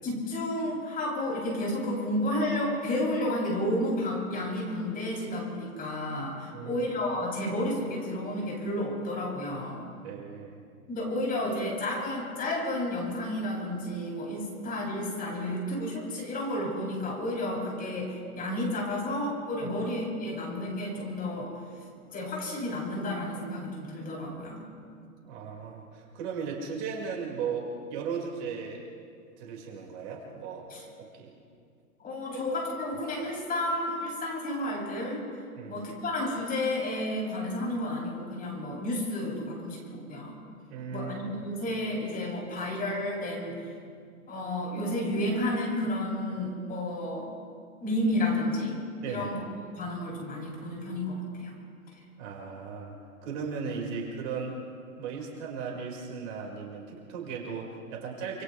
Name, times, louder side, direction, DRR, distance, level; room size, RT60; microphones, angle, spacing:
voice 1, 0.0-9.9 10.9-21.6 22.1-24.6 30.7-30.8 32.0-35.2 35.6-40.4 40.9-43.7 44.3-47.3 47.8-48.8 49.1-49.4 49.8-51.5, left 1 dB, 20° left, -3 dB, 7.7 m, -31 dB
voice 2, 6.5-6.9 10.0-10.6 19.6-19.7 25.2-28.8 29.4-30.6 31.0-31.3 32.3-32.4 35.6-35.8 40.7-41.4 49.0-49.3 52.2-52.9 53.2-54.6 55.0-58.4, right 6 dB, 45° right, -1 dB, 5.2 m, -36 dB
28.5 x 28.5 x 3.3 m, 2.2 s
hypercardioid pair, 125°, 45 cm